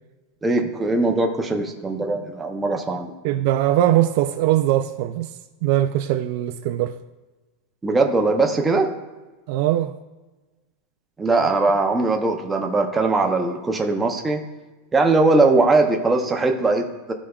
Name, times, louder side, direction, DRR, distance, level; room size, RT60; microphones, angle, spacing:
voice 1, 0.4-3.1 7.8-8.9 11.2-14.4 14.9-17.1, right 3 dB, 10° right, 0.6 m, -20 dB
voice 2, 3.2-5.3 5.6-6.9 9.5-9.9, right 13 dB, 45° right, 0.3 m, -21 dB
14.5 x 4.9 x 2.3 m
supercardioid pair, 175°, 0 cm